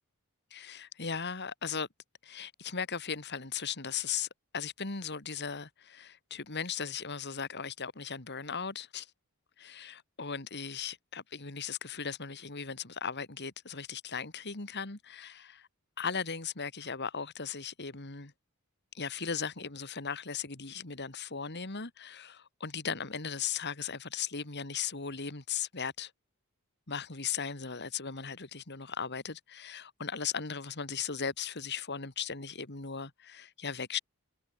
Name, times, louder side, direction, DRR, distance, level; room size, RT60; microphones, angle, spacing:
voice 1, 0.5-1.9 2.2-4.3 4.5-9.1 9.6-15.7 16.0-18.3 18.9-26.1 26.9-34.0, left 6 dB, 50° left, 2.3 m, -37 dB
head